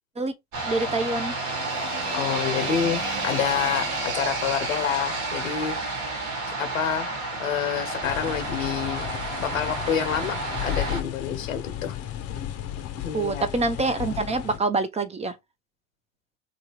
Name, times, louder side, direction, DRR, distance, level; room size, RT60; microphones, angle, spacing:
sound 1, 0.5-11.0, right 2 dB, 50° right, 1.2 m, -30 dB
voice 1, 0.7-1.3 13.1-15.3, right 3 dB, 15° right, 0.4 m, -26 dB
voice 2, 2.1-5.8 6.6-9.1 9.4-12.0 13.0-13.5, left 8 dB, 85° left, 0.8 m, -28 dB
sound 2, 8.0-14.6, left 11 dB, 40° left, 0.6 m, -34 dB
2.8 x 2.6 x 2.9 m
hypercardioid pair, 75°, 39 cm